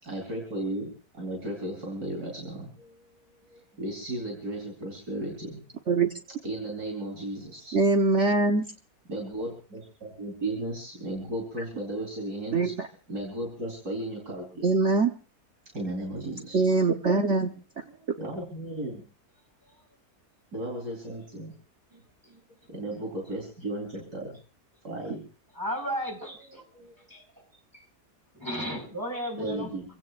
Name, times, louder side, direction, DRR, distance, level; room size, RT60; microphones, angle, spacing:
voice 1, 0.0-5.6 6.4-7.7 9.1-12.7 13.1-14.7 15.7-16.6 17.9-19.0 20.5-21.5 21.9-22.0 22.3-22.4 22.7-24.4 24.8-25.2 26.7-26.9 29.4-29.8, right 1 dB, 80° right, 0 dB, 4.7 m, -35 dB
voice 2, 7.7-8.7 12.5-12.9 14.6-15.1 16.5-17.5, right 3 dB, 50° right, 4 dB, 1.3 m, -23 dB
voice 3, 25.5-26.6 27.1-27.5 27.7-27.8 28.3-29.7, equal, 10° right, 1 dB, 4.7 m, -34 dB
28.0 x 16.5 x 2.5 m, 0.36 s
omnidirectional pair, 1.7 m